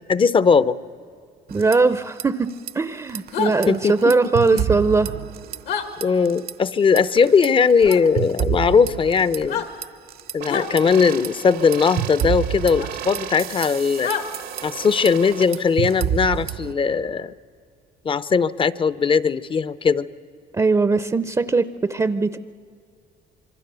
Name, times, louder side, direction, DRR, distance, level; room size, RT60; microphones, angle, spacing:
voice 1, 0.1-0.8 3.7-4.7 6.0-9.6 10.3-14.1 14.6-17.3 18.0-20.1, left 5 dB, 30° left, 17 dB, 0.7 m, -19 dB
voice 2, 1.5-5.1 20.5-22.4, right 3 dB, 20° right, 13 dB, 0.6 m, -20 dB
sound 1, 1.5-2.2 2.5-2.7 3.1-5.8 6.0-6.5 7.0-10.3 10.8-16.7, right 10 dB, 65° right, 0.8 m, -29 dB
sound 2, 3.3-3.5 5.6-5.9 7.8-8.0 9.4-9.7 10.5-10.7 12.8-12.9 14.0-14.2, left 8 dB, 80° left, 2.1 m, -26 dB
sound 3, 10.4-15.4, right 10 dB, 90° right, 1.7 m, -36 dB
26.0 x 23.5 x 6.9 m, 2.3 s
cardioid pair, 110°, 17 cm